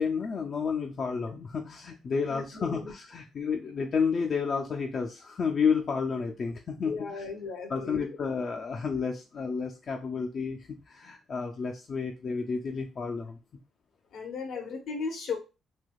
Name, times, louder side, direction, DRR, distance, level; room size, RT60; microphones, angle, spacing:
voice 1, 0.0-7.2 7.7-13.4 14.5-14.8, left 5 dB, 50° left, 2 dB, 0.4 m, -31 dB
voice 2, 2.3-2.9 6.8-8.2 14.1-15.4, left 4 dB, 75° left, 4 dB, 0.9 m, -36 dB
3.3 x 2.8 x 2.3 m, 0.30 s
cardioid pair, 90°, 0 cm